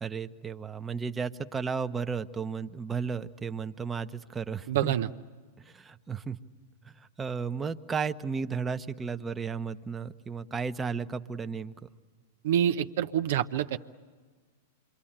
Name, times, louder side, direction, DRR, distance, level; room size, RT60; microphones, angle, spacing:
voice 1, 0.0-4.9 5.6-6.4 6.8-11.9, right 5 dB, 15° right, 8 dB, 1.0 m, -34 dB
voice 2, 4.7-5.1 12.4-13.8, right 10 dB, 65° right, 9 dB, 0.8 m, -26 dB
27.0 x 24.0 x 8.9 m, 1.5 s
hypercardioid pair, 105°, 0 cm